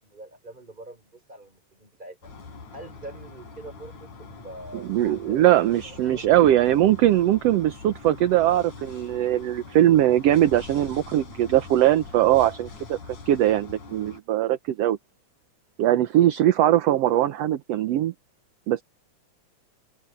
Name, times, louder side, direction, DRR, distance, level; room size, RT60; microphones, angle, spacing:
voice 1, 0.0-2.3 2.7-5.6 5.8-6.3, right 1 dB, 15° right, 5.1 m, -44 dB
sound 1, 2.2-14.2, left 4 dB, 70° left, 6.5 m, -43 dB
voice 2, 4.7-13.0 13.3-15.0 15.8-18.1 18.7-18.8, right 13 dB, 65° right, 1.7 m, -21 dB
open air
omnidirectional pair, 3.5 m